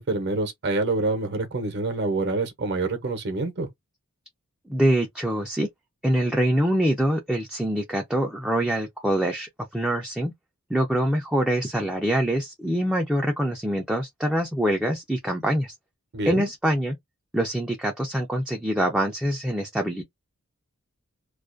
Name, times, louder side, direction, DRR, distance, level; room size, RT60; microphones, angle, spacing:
voice 1, 0.0-3.7 16.1-16.5, right 3 dB, 55° right, 0.7 m, -26 dB
voice 2, 4.7-5.7 6.0-10.3 10.7-15.8 16.3-17.0 17.3-20.0, right 1 dB, 5° right, 0.3 m, -24 dB
2.3 x 2.1 x 2.5 m
head